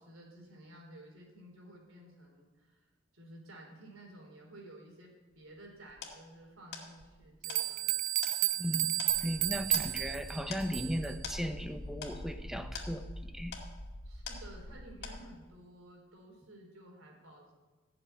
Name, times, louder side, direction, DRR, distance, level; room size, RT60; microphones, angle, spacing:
voice 1, 0.0-7.9 14.0-17.5, right 1 dB, 85° right, 1 dB, 3.8 m, -53 dB
sound 1, 5.3-14.8 15.0-15.6, left 5 dB, 55° left, 2.2 m, -47 dB
sound 2, 7.0-7.1 7.4-11.1, right 13 dB, 40° right, 0.5 m, -32 dB
voice 2, 8.6-9.0 9.2-13.1 13.3-13.6, equal, ahead, 8 dB, 0.7 m, -36 dB
sound 3, 9.1-15.2, left 1 dB, 70° left, 1.2 m, -45 dB
15.5 x 6.8 x 9.3 m, 1.3 s
head